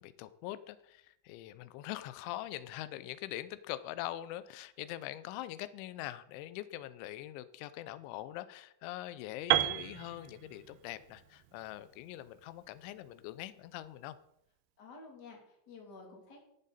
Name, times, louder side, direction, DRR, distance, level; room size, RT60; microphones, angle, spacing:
voice 1, 0.0-14.2, left 14 dB, 90° left, 14 dB, 3.1 m, -43 dB
Piano, 9.5-13.4, right 14 dB, 85° right, 2.2 m, -34 dB
voice 2, 14.8-16.4, left 3 dB, 25° left, -1 dB, 2.9 m, -51 dB
14.5 x 11.0 x 4.2 m, 0.78 s
omnidirectional pair, 5.2 m